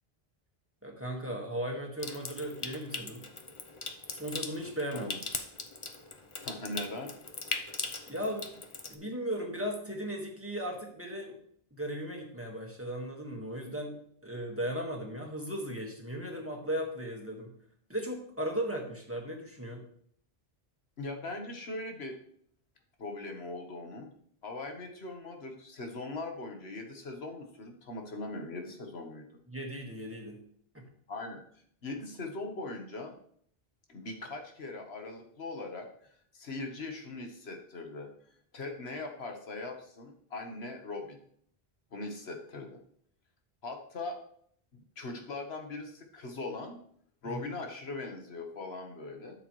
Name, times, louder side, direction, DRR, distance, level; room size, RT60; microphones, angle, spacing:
voice 1, 0.8-3.2 4.1-5.1 8.1-8.5 8.9-11.4 11.7-13.9 14.2-17.5 17.9-19.8 29.5-30.4 47.2-47.6, equal, 15° right, 0 dB, 1.7 m, -36 dB
Water tap faucet / Sink (filling or washing) / Trickle dribble, 2.0-9.0, left 3 dB, 35° left, 0.8 m, -40 dB
voice 2, 6.4-7.1 21.0-22.2 23.0-24.1 24.4-29.3 31.1-31.4 31.8-33.2 33.9-35.9 36.3-38.1 38.5-41.2 41.9-42.8 43.6-44.2 44.7-46.8 47.2-49.4, left 2 dB, 85° left, 3 dB, 1.6 m, -40 dB
12.5 x 7.3 x 3.2 m, 0.64 s
omnidirectional pair, 1.0 m